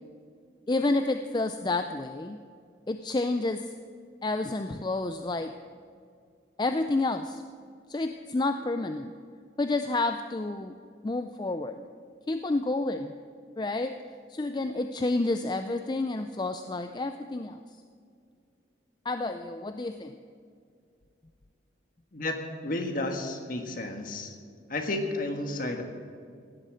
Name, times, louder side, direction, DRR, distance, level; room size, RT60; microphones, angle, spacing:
voice 1, 0.7-2.4 2.9-3.7 4.2-5.5 6.6-7.4 7.9-9.1 9.6-10.7 11.0-11.9 12.3-13.1 13.6-14.0 14.3-17.6 19.1-20.2, left 2 dB, 20° left, 8 dB, 0.4 m, -29 dB
voice 2, 22.6-24.3 24.7-25.8, left 2 dB, 45° left, 4 dB, 1.5 m, -32 dB
16.5 x 8.3 x 7.6 m, 2.2 s
head